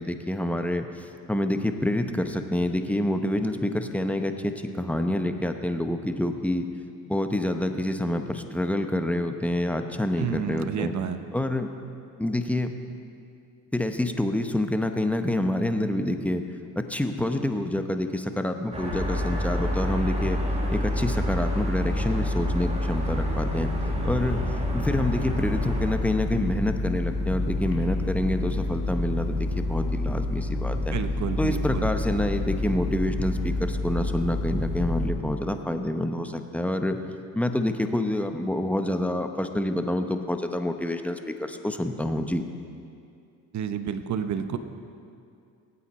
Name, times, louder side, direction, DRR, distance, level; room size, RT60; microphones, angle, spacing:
voice 1, 0.0-6.6 7.1-10.9 11.3-11.7 12.2-12.7 13.7-16.4 16.8-20.4 20.7-23.7 24.0-24.4 24.7-31.0 31.4-37.0 37.3-42.4, left 1 dB, 5° left, 6 dB, 0.9 m, -27 dB
voice 2, 10.2-11.2 30.9-31.9 43.5-44.6, right 8 dB, 45° right, 9 dB, 1.0 m, -30 dB
sound 1, 18.7-25.9, right 2 dB, 15° right, 2.1 m, -33 dB
sound 2, 18.9-35.1, left 2 dB, 60° left, 2.7 m, -28 dB
18.5 x 8.4 x 4.3 m, 2.4 s
supercardioid pair, 80°, 40 cm